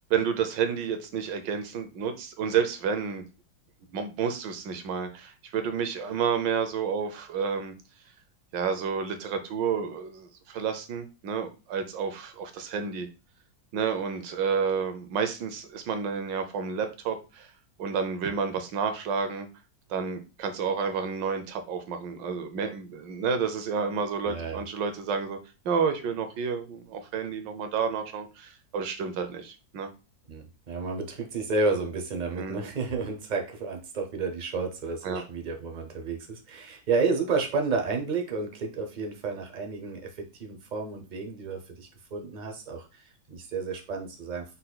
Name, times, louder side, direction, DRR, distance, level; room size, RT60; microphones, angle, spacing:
voice 1, 0.1-3.2 3.9-7.7 8.5-13.1 13.7-17.5 17.8-19.5 19.9-25.4 25.6-29.9 32.4-32.7 35.0-35.2, right 6 dB, 80° right, 8 dB, 1.4 m, -30 dB
voice 2, 24.2-24.6 30.3-44.4, right 4 dB, 50° right, 3 dB, 0.5 m, -31 dB
5.4 x 4.1 x 2.3 m, 0.30 s
omnidirectional pair, 2.0 m